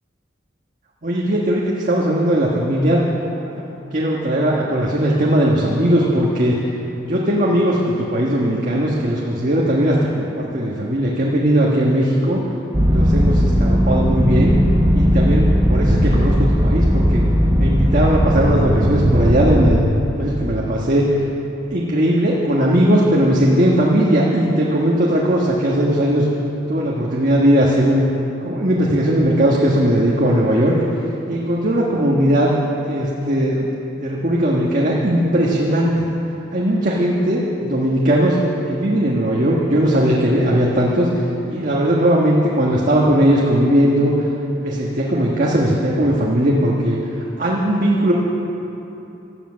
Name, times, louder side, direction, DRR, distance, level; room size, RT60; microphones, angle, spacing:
voice 1, 1.0-3.0 3.4-6.6 7.0-12.4 12.9-14.5 14.9-17.3 17.5-19.8 20.1-21.0 21.7-26.3 26.7-28.0 28.4-30.7 31.3-32.5 32.8-33.7 34.0-36.0 36.5-38.4 38.7-44.3 44.6-47.0 47.4-48.1, equal, 45° right, -3 dB, 1.5 m, -18 dB
sound 1, 12.7-19.8, equal, 20° right, 1.0 m, -16 dB
17.5 x 12.0 x 6.3 m, 2.9 s
head